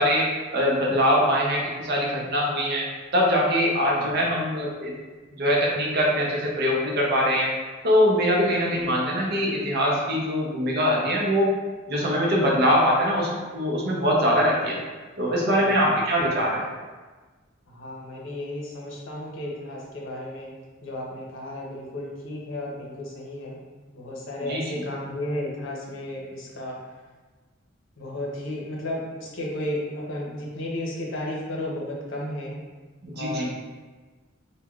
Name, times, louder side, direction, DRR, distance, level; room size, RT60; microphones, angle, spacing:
voice 1, 0.0-2.8 3.1-4.9 5.4-7.5 7.8-11.5 11.9-14.8 15.2-16.6 24.5-24.6 33.0-33.5, equal, 55° right, -2 dB, 0.6 m, -22 dB
voice 2, 15.6-16.0 17.7-20.5 20.8-23.6 23.9-26.7 28.0-32.5 33.1-33.5, left 1 dB, 70° left, -3 dB, 0.6 m, -33 dB
3.2 x 2.1 x 2.3 m, 1.3 s
head